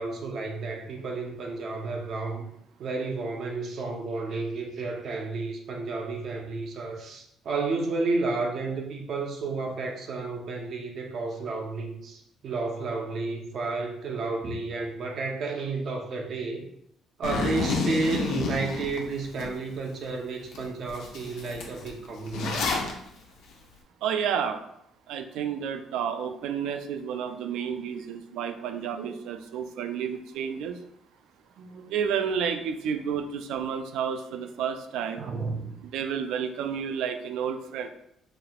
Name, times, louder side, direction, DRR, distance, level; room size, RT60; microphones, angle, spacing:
voice 1, 0.0-2.5 2.8-16.6 17.2-22.6 29.0-29.1 31.6-31.9 35.2-35.7, right 3 dB, 45° right, 1 dB, 0.6 m, -32 dB
Zipper (clothing), 17.2-19.5 19.9-20.0 20.5-20.6 20.9-22.9, left 3 dB, 70° left, 0.7 m, -29 dB
voice 2, 24.0-24.6 25.1-30.8 31.9-35.2 35.9-37.9, right 7 dB, 85° right, 8 dB, 0.4 m, -30 dB
5.3 x 2.7 x 2.3 m, 0.76 s
cardioid pair, 175°, 0 cm